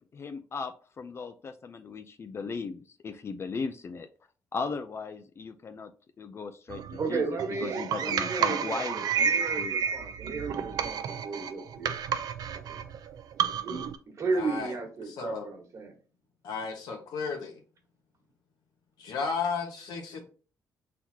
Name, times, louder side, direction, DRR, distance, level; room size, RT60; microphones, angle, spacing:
voice 1, 0.1-4.1 4.5-5.9 6.2-9.9, left 4 dB, 40° left, 9 dB, 0.4 m, -37 dB
sound 1, 6.7-14.0, right 7 dB, 70° right, 0.5 m, -31 dB
voice 2, 7.0-12.1 12.7-12.8 13.6-13.8 14.2-16.0, right 4 dB, 50° right, 2 dB, 1.5 m, -34 dB
voice 3, 14.3-14.7 15.0-15.5 16.4-17.6 19.0-20.3, left 5 dB, 90° left, 3 dB, 1.4 m, -33 dB
4.5 x 4.0 x 2.8 m, 0.37 s
cardioid pair, 100°, 7 cm